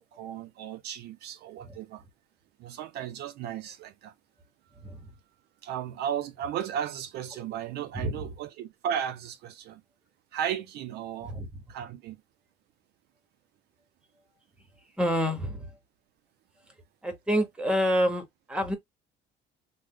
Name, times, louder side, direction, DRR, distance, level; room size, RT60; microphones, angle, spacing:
voice 1, 0.0-2.0 2.6-4.1 5.6-9.8 10.3-11.4 11.7-12.2, right 9 dB, 60° right, 0.5 m, -35 dB
voice 2, 15.0-15.7 17.0-18.7, equal, 5° right, 1.0 m, -28 dB
3.2 x 2.1 x 3.6 m
cardioid pair, 150°, 19 cm